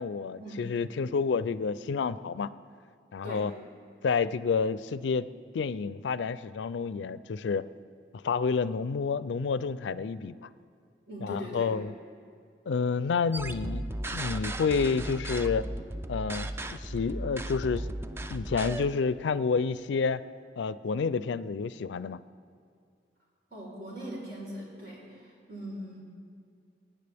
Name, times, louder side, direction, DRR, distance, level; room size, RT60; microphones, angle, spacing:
voice 1, 0.0-2.5 3.1-3.5 4.0-5.3 5.5-7.7 8.2-10.3 11.2-11.9 12.7-13.9 14.1-15.7 16.1-17.9 18.3-20.2 20.6-22.2, left 5 dB, 90° left, 16 dB, 0.4 m, -29 dB
voice 2, 11.1-11.7 23.5-26.0, equal, 60° right, -4 dB, 4.1 m, -40 dB
sound 1, 13.3-18.9, right 1 dB, 15° right, 0.3 m, -36 dB
23.0 x 10.0 x 3.5 m, 2.3 s
head